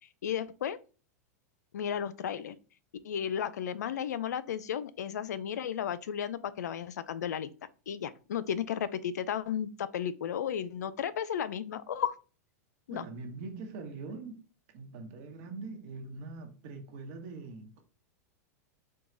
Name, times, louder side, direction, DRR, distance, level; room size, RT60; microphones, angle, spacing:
voice 1, 0.2-0.8 1.7-2.6 3.0-7.5 7.9-12.2 12.9-13.1, left 9 dB, 85° left, 0.4 m, -34 dB
voice 2, 12.9-14.4 14.7-17.8, right 3 dB, 55° right, 1.0 m, -43 dB
4.6 x 2.3 x 3.7 m
hypercardioid pair, 115°, 9 cm